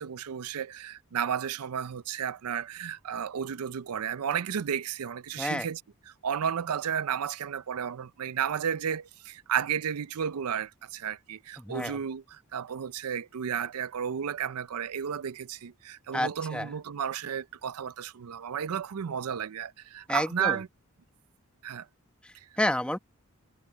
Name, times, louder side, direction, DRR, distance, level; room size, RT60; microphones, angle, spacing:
voice 1, 0.0-5.8 6.1-20.7 21.6-21.9, right 8 dB, 85° right, 0.5 m, -33 dB
voice 2, 5.4-5.7 11.6-12.0 16.1-16.7 20.1-20.6 22.2-23.0, left 1 dB, 5° left, 1.0 m, -30 dB
head